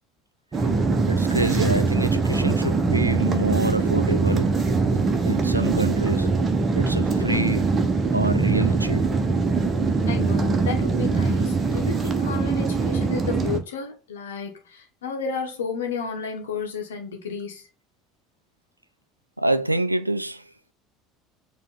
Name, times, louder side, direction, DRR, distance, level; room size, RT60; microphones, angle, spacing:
sound 1, 0.5-13.6, right 4 dB, 30° right, 1.3 m, -22 dB
voice 1, 1.1-4.6 5.2-6.3 6.7-7.8 8.1-9.1 19.4-20.5, right 1 dB, 90° right, 0.5 m, -27 dB
voice 2, 10.1-17.7, left 5 dB, 70° left, 1.7 m, -32 dB
7.3 x 3.4 x 4.0 m
figure-of-eight pair, 65°, 0 cm